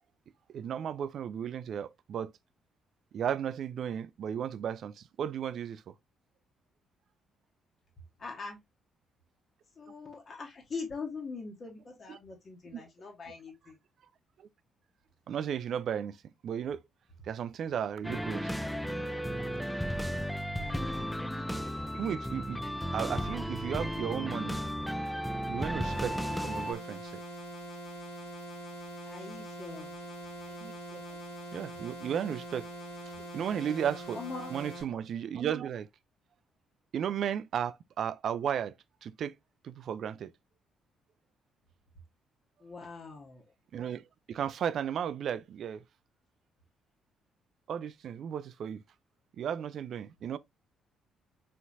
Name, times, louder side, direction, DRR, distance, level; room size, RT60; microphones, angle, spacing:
voice 1, 0.5-2.3 3.1-5.9 12.1-12.2 12.7-12.8 15.3-16.2 16.4-16.8 17.3-18.5 21.9-22.6 22.9-24.6 25.5-27.2 30.5-31.0 31.5-32.7 33.3-34.2 34.5-35.9 36.9-38.8 39.0-39.3 39.6-40.3 43.7-45.8 47.7-48.8 49.4-50.4, right 8 dB, 55° right, 0.4 m, -34 dB
voice 2, 8.2-8.6 9.8-13.8 20.5-21.0 29.0-29.9 33.2-33.3 34.1-34.5 42.6-43.4, left 4 dB, 45° left, 1.3 m, -42 dB
sound 1, 18.0-26.7, equal, 5° left, 0.6 m, -34 dB
sound 2, 25.8-34.8, right 1 dB, 90° left, 2.1 m, -43 dB
4.3 x 3.7 x 2.6 m
hypercardioid pair, 45°, 0 cm